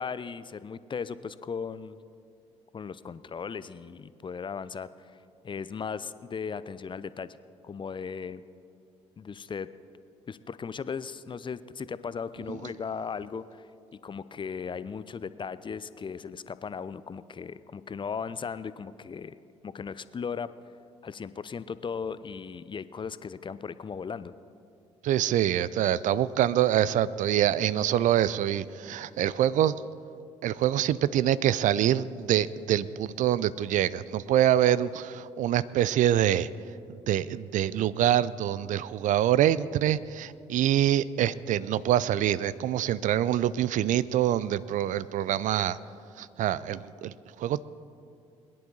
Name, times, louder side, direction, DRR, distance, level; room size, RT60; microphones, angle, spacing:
voice 1, 0.0-2.0 2.7-5.1 5.4-7.3 7.6-8.4 9.2-9.7 10.3-13.7 14.0-19.3 19.6-20.5 21.0-24.3, left 6 dB, 30° left, 15 dB, 0.6 m, -37 dB
voice 2, 25.0-29.8 30.4-36.5 37.1-45.8 46.2-47.6, right 11 dB, 55° right, 18 dB, 0.5 m, -25 dB
22.0 x 10.5 x 4.0 m, 2.5 s
hypercardioid pair, 45°, 15 cm